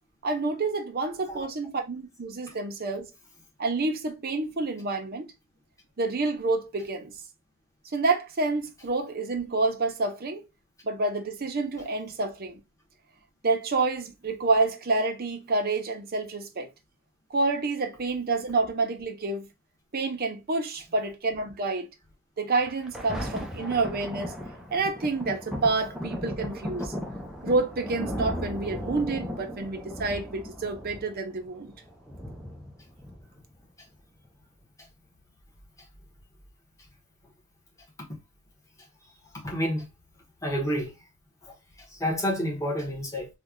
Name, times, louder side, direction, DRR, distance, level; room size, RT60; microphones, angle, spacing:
voice 1, 0.2-3.1 3.6-5.3 6.0-7.1 7.9-10.4 10.8-12.6 13.4-16.7 17.3-19.5 19.9-21.9 22.4-24.3 24.7-26.9 27.4-31.7, right 3 dB, 45° right, 0.6 m, -28 dB
Thunder, 22.6-33.6 34.2-34.3, equal, ahead, 0.5 m, -36 dB
voice 2, 39.4-39.9 40.4-40.9 41.4-41.5 41.9-43.3, equal, 15° left, 1.1 m, -29 dB
3.1 x 2.3 x 3.5 m
head